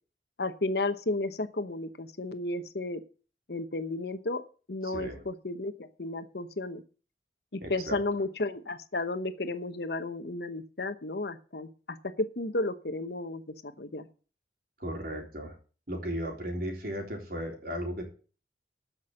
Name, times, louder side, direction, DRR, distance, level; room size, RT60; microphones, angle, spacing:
voice 1, 0.4-3.0 3.5-4.4 4.7-6.8 7.5-13.4 13.8-14.1, left 2 dB, 60° left, 11 dB, 1.0 m, -33 dB
voice 2, 4.8-5.2 7.6-8.0 14.8-15.5 15.9-18.0, equal, 55° right, 2 dB, 3.7 m, -35 dB
13.5 x 6.1 x 6.5 m, 0.38 s
head